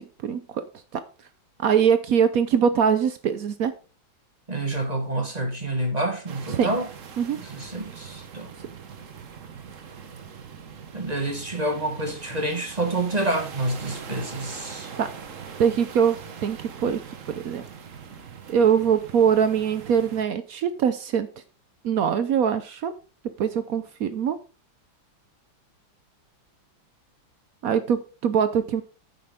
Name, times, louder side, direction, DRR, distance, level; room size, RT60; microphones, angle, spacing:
voice 1, 0.2-0.6 1.6-3.7 6.5-6.7 7.2-7.4 15.0-15.1 15.6-16.2 16.4-17.0 17.3-17.6 18.5-21.3 21.8-22.9 23.4-24.4 27.6-28.8, right 7 dB, 65° right, 0.9 m, -22 dB
voice 2, 4.5-6.9 7.4-8.5 10.9-14.9, right 1 dB, 25° right, 1.1 m, -28 dB
sound 1, 6.3-20.2, right 6 dB, 45° right, 1.2 m, -42 dB
9.4 x 7.8 x 3.6 m
omnidirectional pair, 2.2 m